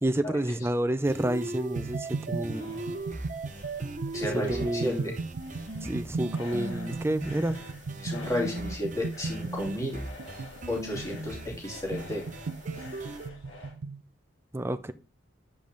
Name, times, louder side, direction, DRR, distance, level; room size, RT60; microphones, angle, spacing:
voice 1, 0.0-2.8 4.3-5.1 5.8-7.6 14.5-14.9, right 1 dB, 10° right, 0.5 m, -29 dB
sound 1, 1.1-13.3, right 2 dB, 40° right, 0.9 m, -38 dB
sound 2, 1.8-14.0, right 4 dB, 75° right, 0.5 m, -37 dB
sound 3, 2.0-13.8, left 2 dB, 70° left, 3.2 m, -48 dB
voice 2, 4.1-5.2 8.0-10.0 10.7-12.3, left 1 dB, 15° left, 2.9 m, -33 dB
8.6 x 5.3 x 3.9 m
head